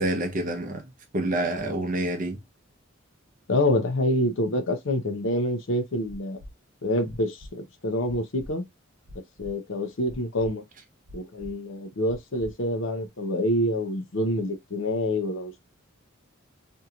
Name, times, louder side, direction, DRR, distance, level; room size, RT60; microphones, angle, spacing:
voice 1, 0.0-2.4, right 1 dB, 40° right, 0.6 m, -28 dB
voice 2, 3.5-6.4 6.8-8.6 9.4-10.6 11.1-15.6, left 1 dB, 70° left, 0.6 m, -27 dB
sound 1, 6.0-6.5 7.0-7.5 8.0-8.5 9.0-9.5 10.0-10.5 11.0-11.5 12.0-12.5 13.1-13.2, equal, 80° right, 0.8 m, -44 dB
2.9 x 2.7 x 2.3 m
head